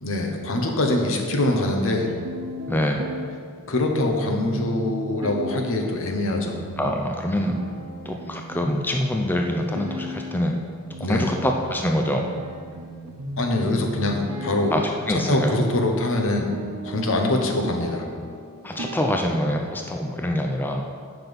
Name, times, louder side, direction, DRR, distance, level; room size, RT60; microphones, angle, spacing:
voice 1, 0.0-2.1 3.7-6.6 11.0-11.3 13.4-14.7 15.1-16.5 16.8-18.0, left 1 dB, 65° left, 2 dB, 1.1 m, -24 dB
sound 1, 1.9-19.9, equal, 75° right, 0.9 m, -36 dB
voice 2, 2.7-3.1 6.8-7.6 8.0-10.6 11.0-12.3 14.7-15.6 18.6-20.9, left 1 dB, 10° left, 2 dB, 0.5 m, -25 dB
7.7 x 5.9 x 5.3 m, 2.2 s
head